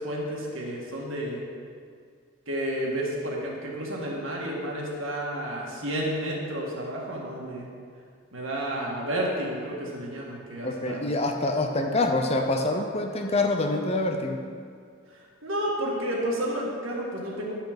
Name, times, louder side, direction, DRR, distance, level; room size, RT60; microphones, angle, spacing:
voice 1, 0.0-1.4 2.5-7.7 8.3-11.1 15.4-17.6, right 1 dB, 65° right, -2 dB, 1.8 m, -31 dB
voice 2, 10.6-14.4, left 2 dB, 30° left, 4 dB, 0.6 m, -26 dB
10.5 x 6.2 x 5.1 m, 2.1 s
head